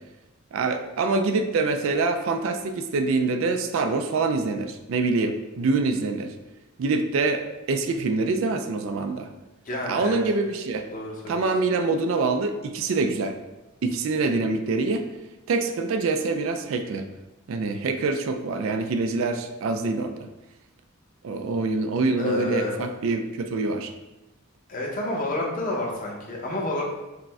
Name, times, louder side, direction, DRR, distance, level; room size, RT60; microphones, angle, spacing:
voice 1, 0.5-6.3 6.8-7.4 7.7-9.3 9.8-10.8 11.3-13.3 13.8-15.1 15.5-17.1 17.5-20.3 21.2-23.9, right 3 dB, 65° right, 7 dB, 0.3 m, -25 dB
voice 2, 9.6-10.2 10.9-11.5 22.2-22.7 24.7-26.8, left 2 dB, 40° left, -2 dB, 0.8 m, -29 dB
4.9 x 2.1 x 3.5 m, 1.1 s
head